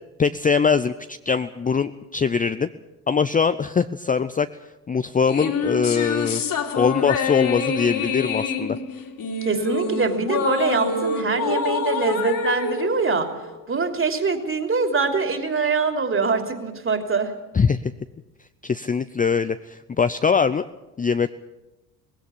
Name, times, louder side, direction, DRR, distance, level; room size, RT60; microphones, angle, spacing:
voice 1, 0.2-2.7 3.1-4.5 4.9-6.4 6.7-8.8 17.5-17.9 18.6-20.7 21.0-21.3, left 6 dB, 20° left, 11 dB, 0.6 m, -22 dB
sound 1, 5.3-13.9, left 4 dB, 45° left, 3.0 m, -26 dB
voice 2, 9.4-13.3 13.7-17.3, right 4 dB, 25° right, 6 dB, 3.3 m, -23 dB
19.0 x 16.5 x 8.8 m, 1.0 s
hypercardioid pair, 60°, 46 cm